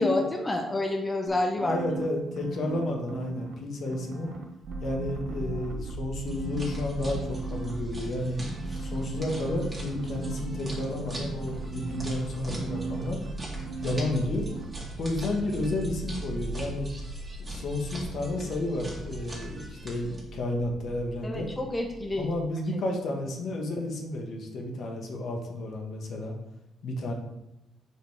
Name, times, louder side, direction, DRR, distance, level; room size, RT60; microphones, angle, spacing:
voice 1, 0.0-1.8 8.7-8.8 21.2-22.3, left 2 dB, 15° left, 2 dB, 0.9 m, -28 dB
sound 1, 1.3-3.5 3.9-5.9 6.2-7.7 8.6-14.2 14.5-14.6, right 5 dB, 65° right, 0.9 m, -39 dB
voice 2, 1.7-4.3 4.8-8.4 8.8-13.2 13.8-14.5 15.0-16.9 17.4-21.5 22.1-26.4 26.8-27.1, left 2 dB, 65° left, 2 dB, 1.3 m, -31 dB
sound 2, 4.6-22.4, right 2 dB, 50° right, 1.7 m, -39 dB
sound 3, 6.3-20.2, right 1 dB, 30° right, 2.2 m, -42 dB
5.1 x 5.1 x 4.7 m, 0.91 s
cardioid pair, 90°, 0 cm